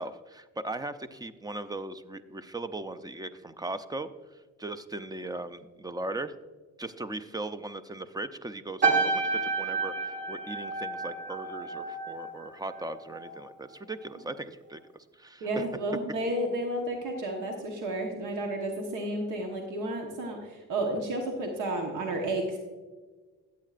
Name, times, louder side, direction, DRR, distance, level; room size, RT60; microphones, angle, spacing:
voice 1, 0.0-4.1 4.6-6.3 6.8-15.7, right 2 dB, 15° right, 12 dB, 0.5 m, -38 dB
sound 1, 8.8-13.4 13.7-14.1, right 4 dB, 40° right, 1.8 m, -30 dB
voice 2, 15.4-22.6, right 1 dB, 90° right, 2 dB, 1.3 m, -32 dB
13.5 x 8.4 x 2.5 m, 1.4 s
cardioid pair, 90°, 30 cm